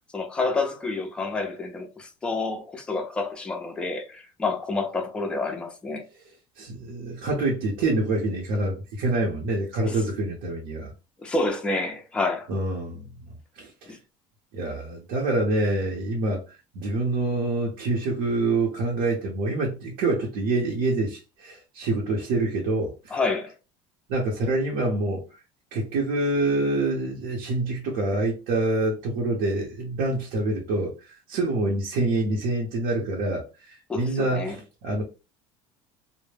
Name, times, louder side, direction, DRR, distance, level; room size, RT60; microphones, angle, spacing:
voice 1, 0.1-6.0 9.8-10.0 11.2-12.5 13.9-14.0 23.1-23.5 33.9-34.6, left 3 dB, 10° left, 0.4 m, -28 dB
voice 2, 6.6-10.9 12.5-14.0 14.5-16.4 16.7-23.2 24.1-25.2 25.7-35.0, right 2 dB, 70° right, 0.7 m, -26 dB
2.1 x 2.0 x 3.1 m
cardioid pair, 165°, 12 cm